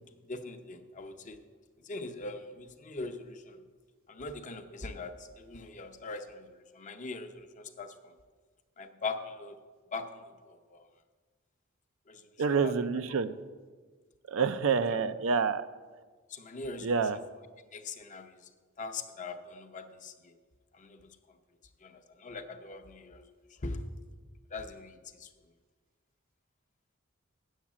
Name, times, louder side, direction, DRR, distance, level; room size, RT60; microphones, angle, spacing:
voice 1, 0.3-1.4 1.8-3.6 4.1-8.1 8.8-9.6 9.9-10.9 12.1-12.3 12.6-12.7 14.9-15.0 16.3-16.9 17.7-18.5 18.8-20.3 20.7-21.2 21.8-23.2 23.6-23.8 24.5-25.3, left 3 dB, 40° left, 7 dB, 0.7 m, -41 dB
voice 2, 12.4-13.3 14.3-15.7 16.8-17.2, right 5 dB, 70° right, 12 dB, 0.5 m, -27 dB
8.1 x 7.3 x 7.3 m, 1.4 s
head